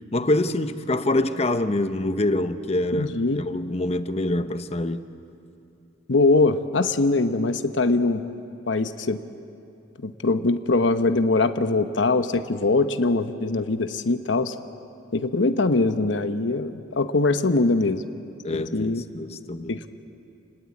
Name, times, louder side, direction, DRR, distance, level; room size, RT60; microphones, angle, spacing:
voice 1, 0.1-5.0 18.4-19.8, left 1 dB, 35° left, 0.9 m, -25 dB
voice 2, 2.9-3.4 6.1-8.2 8.6-9.2 10.0-14.5 15.1-18.0 18.7-19.0 19.7-19.9, left 3 dB, 85° left, 1.0 m, -22 dB
29.0 x 20.0 x 8.5 m
head